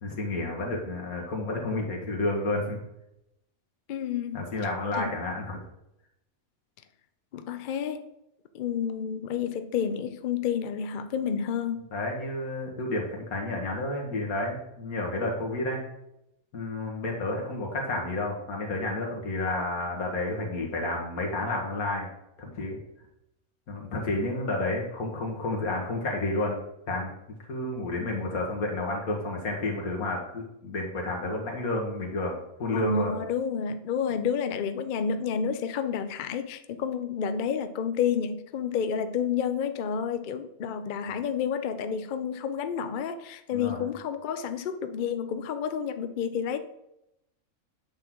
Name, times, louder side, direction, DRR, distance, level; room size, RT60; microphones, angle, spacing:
voice 1, 0.0-2.8 4.3-5.6 11.9-15.8 16.5-22.1 22.4-22.8 23.7-26.6 26.9-27.1 27.5-33.2 43.5-43.9, left 2 dB, 80° left, 2.1 m, -30 dB
voice 2, 3.9-4.4 5.0-5.1 7.3-8.1 8.5-11.8 32.7-46.6, left 7 dB, 60° left, 0.5 m, -30 dB
8.7 x 6.0 x 3.7 m
omnidirectional pair, 1.5 m